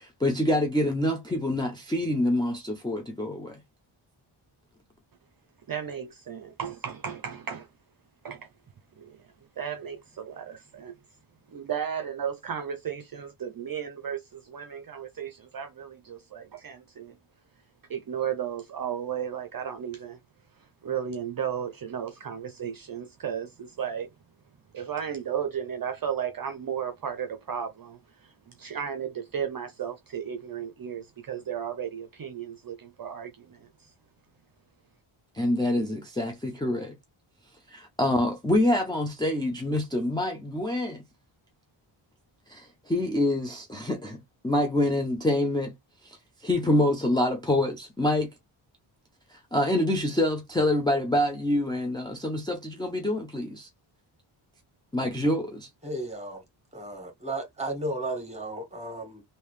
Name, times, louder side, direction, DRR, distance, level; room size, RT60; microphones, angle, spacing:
voice 1, 0.0-3.6 35.3-36.9 37.7-41.0 42.5-44.2 44.4-45.7 46.0-48.3 49.3-53.7 54.9-55.7, left 1 dB, 10° left, 0.5 m, -26 dB
voice 2, 5.7-7.7 8.2-8.5 9.0-9.2 9.6-10.9 11.5-17.2 17.9-20.2 20.6-24.1 24.7-33.9, right 8 dB, 45° right, 0.6 m, -34 dB
voice 3, 55.8-56.4 56.7-59.2, right 1 dB, 15° right, 1.7 m, -34 dB
3.4 x 2.7 x 3.2 m
wide cardioid pair, 145°, 49 cm